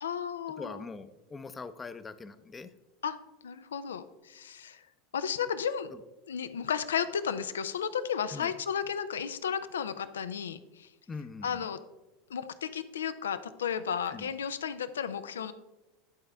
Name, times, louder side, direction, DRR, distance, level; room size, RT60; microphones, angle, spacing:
voice 1, 0.0-0.8 3.0-3.2 3.4-4.8 5.1-5.9 6.3-10.9 11.4-11.8 12.3-15.5, left 7 dB, 85° left, 13 dB, 0.4 m, -33 dB
voice 2, 0.6-2.7 8.3-8.5 11.1-11.6 14.1-14.3, left 4 dB, 20° left, 12 dB, 0.5 m, -42 dB
10.5 x 4.4 x 3.3 m, 1.1 s
hypercardioid pair, 90°, 0 cm